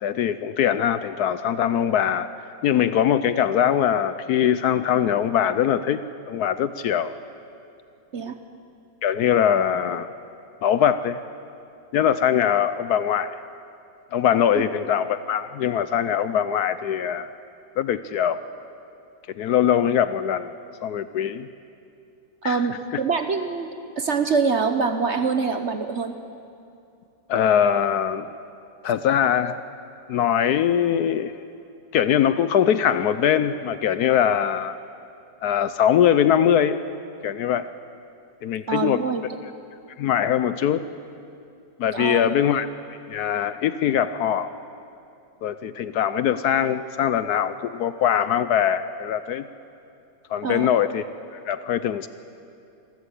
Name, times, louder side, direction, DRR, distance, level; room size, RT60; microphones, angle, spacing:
voice 1, 0.0-2.3 2.6-7.1 9.0-10.1 10.6-11.2 11.9-13.4 14.1-17.3 17.8-18.4 19.4-20.5 20.8-21.5 22.4-22.6 27.3-28.3 28.8-29.6 30.1-31.4 31.9-34.8 35.4-36.8 37.2-37.7 38.4-39.0 40.0-40.9 41.8-42.7 43.1-44.5 45.4-49.4 50.3-51.0 51.5-52.1, left 9 dB, 70° left, 13 dB, 1.1 m, -22 dB
voice 2, 22.4-23.7 24.0-26.2 38.7-39.2 41.9-42.3 50.4-50.7, right 5 dB, 50° right, 8 dB, 1.0 m, -24 dB
26.5 x 13.5 x 8.3 m, 2.5 s
omnidirectional pair, 1.9 m